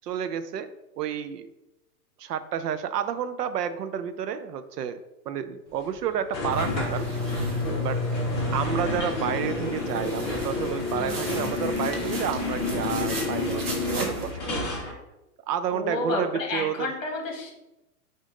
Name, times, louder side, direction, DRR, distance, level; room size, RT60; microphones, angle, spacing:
voice 1, 0.0-0.7 1.0-1.5 2.2-5.0 5.3-7.1 7.8-8.0 8.5-14.6 15.5-16.9, right 8 dB, 70° right, 11 dB, 0.5 m, -30 dB
sound 1, 6.3-14.9, left 2 dB, 15° left, 1.1 m, -29 dB
sound 2, 6.5-14.3, right 2 dB, 40° right, 0.8 m, -39 dB
voice 2, 15.7-17.5, left 2 dB, 50° left, 1 dB, 1.3 m, -31 dB
5.1 x 2.6 x 3.7 m, 0.95 s
hypercardioid pair, 175°, 50 cm